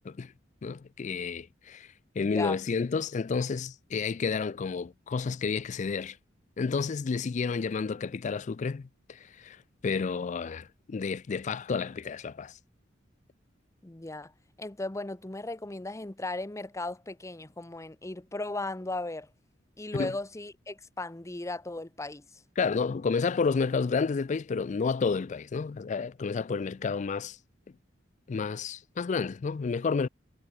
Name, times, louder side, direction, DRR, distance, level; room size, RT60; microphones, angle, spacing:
voice 1, 0.6-1.9 2.2-6.2 6.6-9.6 9.8-12.5 19.9-20.1 22.6-27.4 28.3-30.1, left 5 dB, 40° left, 0.4 m, -30 dB
voice 2, 2.2-2.6 13.8-14.3 14.6-19.3 19.8-22.2, left 2 dB, 15° left, 0.8 m, -36 dB
head